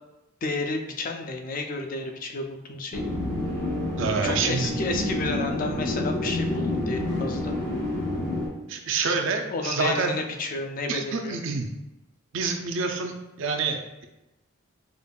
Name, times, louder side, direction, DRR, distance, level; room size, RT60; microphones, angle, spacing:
voice 1, 0.4-3.1 4.2-7.5 9.5-11.4, left 3 dB, 40° left, 4 dB, 0.4 m, -31 dB
sound 1, 2.9-8.5, left 1 dB, 80° left, 1.3 m, -28 dB
voice 2, 4.0-4.7 8.7-10.1 10.9-11.7 12.3-14.1, right 4 dB, 65° right, 3 dB, 0.4 m, -27 dB
5.0 x 2.4 x 2.3 m, 0.97 s
head